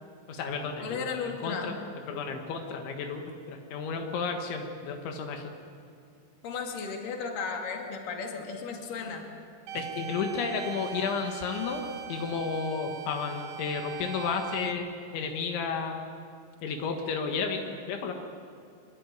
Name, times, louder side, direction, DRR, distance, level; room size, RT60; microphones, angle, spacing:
voice 1, 0.3-1.0 1.4-1.8 2.1-5.5 9.7-14.9 15.1-16.0 16.6-18.1, left 5 dB, 80° left, 3 dB, 4.0 m, -32 dB
voice 2, 0.8-1.7 6.4-9.3, left 5 dB, 50° left, 2 dB, 4.0 m, -35 dB
sound 1, 9.7-14.7, right 9 dB, 70° right, 3.6 m, -40 dB
24.0 x 23.5 x 9.3 m, 2.4 s
omnidirectional pair, 5.3 m